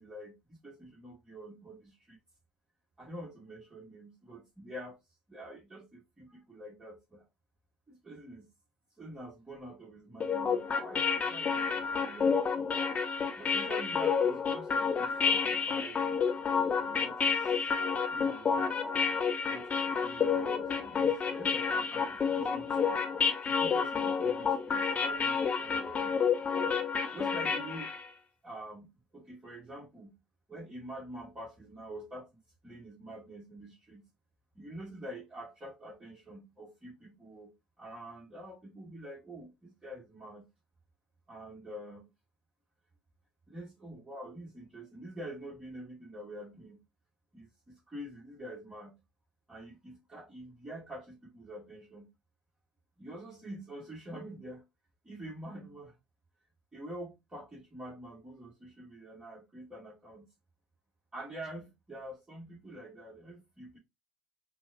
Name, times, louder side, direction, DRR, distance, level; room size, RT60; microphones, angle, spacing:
voice 1, 0.0-2.2 3.0-5.0 5.3-7.3 7.9-8.5 9.0-12.3 13.4-16.2 16.6-18.8 19.5-23.0 23.5-26.1 27.1-27.9 28.4-30.1 30.5-34.0 34.6-40.5 41.3-42.1 43.5-46.8 47.3-49.0 49.5-52.1 53.0-54.7 55.0-55.9 56.7-60.3 61.1-63.8, right 1 dB, 20° right, 1.8 m, -46 dB
sound 1, 10.2-28.1, left 6 dB, 35° left, 0.8 m, -30 dB
5.9 x 2.4 x 2.6 m
hypercardioid pair, 70°, 4 cm